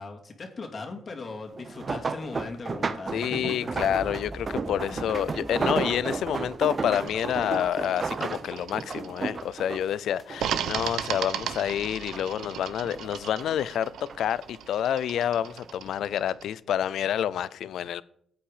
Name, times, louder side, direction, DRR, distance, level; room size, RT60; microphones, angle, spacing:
voice 1, 0.0-3.7 4.9-5.1, left 3 dB, 40° left, 2.4 m, -39 dB
sound 1, 1.6-11.1 11.5-12.4 12.8-14.2 14.9-15.2 15.6-15.7, right 4 dB, 35° right, 0.8 m, -33 dB
voice 2, 3.1-18.0, left 10 dB, 70° left, 0.5 m, -28 dB
Boom, 3.7-9.6, right 1 dB, 10° right, 0.5 m, -46 dB
sound 2, 6.9-9.5 10.4-16.5, right 9 dB, 75° right, 0.9 m, -37 dB
15.5 x 8.7 x 5.0 m
cardioid pair, 90°, 0 cm